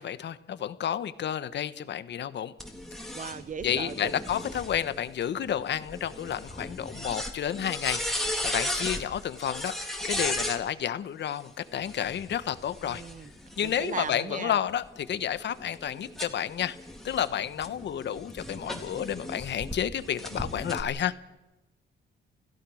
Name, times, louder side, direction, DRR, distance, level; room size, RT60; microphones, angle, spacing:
voice 1, 0.0-2.5 3.6-9.8 10.0-13.0 13.6-16.8 17.0-21.1, left 9 dB, 60° left, 13 dB, 1.3 m, -31 dB
sound 1, 2.6-10.6 11.7-14.1 14.7-19.7 20.2-20.8, left 1 dB, ahead, 3.7 m, -36 dB
voice 2, 3.1-4.1 12.8-13.3 13.6-14.5, right 6 dB, 40° right, 15 dB, 1.1 m, -37 dB
29.0 x 16.0 x 6.5 m, 1.0 s
cardioid pair, 90°, 20 cm